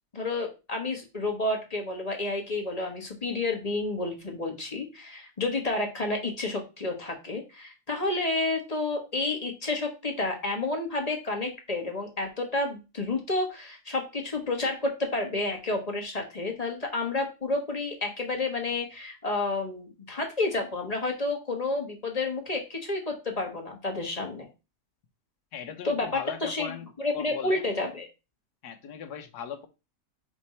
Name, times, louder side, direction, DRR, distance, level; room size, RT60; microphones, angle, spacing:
voice 1, 0.1-24.5 25.8-28.1, left 2 dB, 25° left, 1.3 m, -30 dB
voice 2, 25.5-27.6 28.6-29.7, left 8 dB, 70° left, 1.4 m, -39 dB
5.2 x 4.4 x 4.4 m
omnidirectional pair, 1.8 m